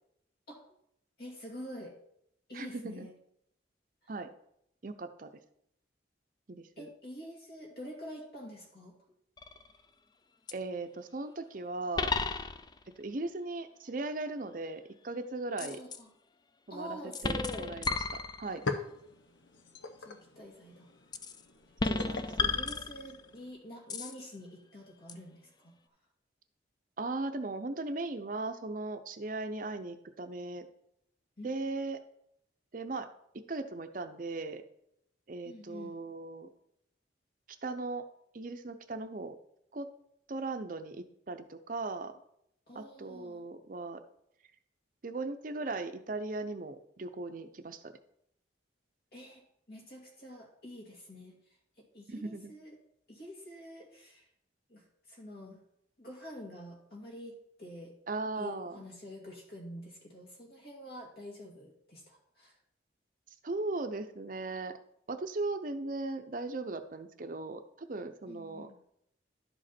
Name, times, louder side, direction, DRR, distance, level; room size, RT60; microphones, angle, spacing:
voice 1, 1.2-1.9 2.5-3.2 6.8-8.9 15.6-16.1 16.7-17.7 20.0-20.9 22.0-25.7 31.4-31.5 35.4-36.0 42.7-43.5 49.1-49.4 49.7-51.3 51.8-52.7 53.1-54.2 54.7-55.6 56.0-57.9 58.4-62.6 68.3-68.7, equal, 55° left, 0 dB, 2.5 m, -47 dB
voice 2, 2.5-3.1 4.1-4.3 4.8-5.3 6.5-6.9 10.5-12.1 13.0-15.8 16.7-18.6 21.9-22.6 27.0-30.7 31.4-32.0 32.7-33.1 33.3-34.6 35.3-36.5 37.6-38.1 38.3-39.4 39.7-39.9 40.3-42.1 42.7-44.0 45.0-47.9 52.1-52.5 58.1-58.8 63.4-64.8 65.1-68.7, right 3 dB, 45° right, 9 dB, 0.6 m, -38 dB
sound 1, 9.4-9.8 10.5-10.6 12.0-12.9 15.6-16.0 17.1-18.7 21.1-21.4 21.8-23.3 23.9-24.2 25.1-25.2, left 4 dB, 20° left, 0.3 m, -33 dB
sound 2, 17.9-18.0 18.3-23.5, left 3 dB, 90° left, 0.9 m, -42 dB
11.5 x 5.1 x 4.3 m, 0.74 s
head